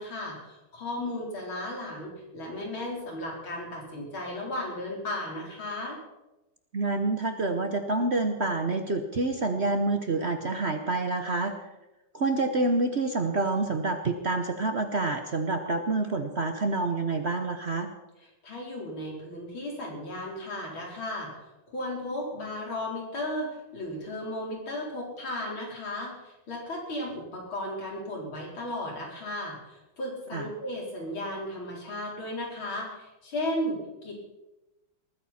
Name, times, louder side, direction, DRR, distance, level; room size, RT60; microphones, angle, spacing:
voice 1, 0.0-6.0 18.4-21.3 21.7-34.1, left 1 dB, 85° left, -2 dB, 5.2 m, -35 dB
voice 2, 6.7-11.5 12.1-17.9 30.3-30.5, right 2 dB, 45° right, 6 dB, 1.0 m, -27 dB
20.0 x 14.5 x 4.3 m, 1.0 s
omnidirectional pair, 2.2 m